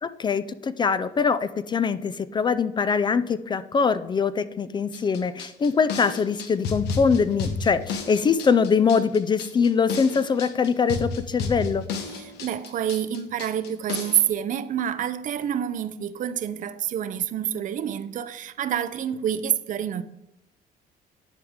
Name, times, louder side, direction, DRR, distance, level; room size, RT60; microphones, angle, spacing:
voice 1, 0.0-11.9, left 5 dB, 25° left, 0.3 m, -23 dB
sound 1, 4.9-14.3, left 4 dB, 80° left, 1.0 m, -32 dB
voice 2, 12.1-20.0, right 9 dB, 50° right, 0.5 m, -27 dB
11.0 x 4.8 x 3.6 m
cardioid pair, 110°, 17 cm